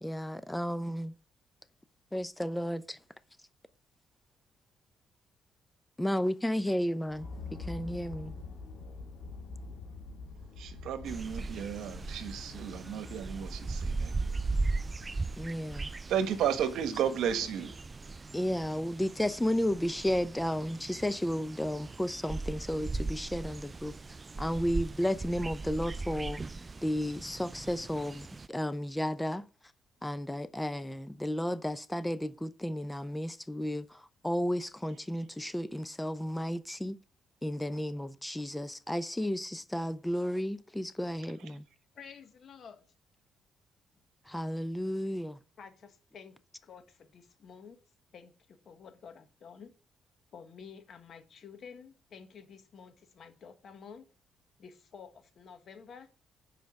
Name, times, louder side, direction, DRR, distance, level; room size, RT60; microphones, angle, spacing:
voice 1, 0.0-1.1 2.1-3.0 6.0-7.3 7.6-8.3 15.4-15.9 18.3-23.9 24.4-26.4 26.8-29.4 30.0-33.8 34.2-37.0 37.4-41.6 44.3-45.4, equal, 10° left, 0.7 m, -33 dB
sound 1, 7.1-16.7, left 3 dB, 85° left, 2.3 m, -46 dB
voice 2, 10.6-14.4 16.1-17.7 41.4-41.6, right 8 dB, 80° right, 1.2 m, -33 dB
sound 2, 11.1-28.5, right 3 dB, 25° right, 0.3 m, -38 dB
voice 3, 41.9-42.9 45.6-47.8 48.1-49.7 50.3-54.0 54.6-56.1, left 6 dB, 55° left, 1.4 m, -51 dB
7.0 x 5.0 x 6.5 m
cardioid pair, 90°, 0 cm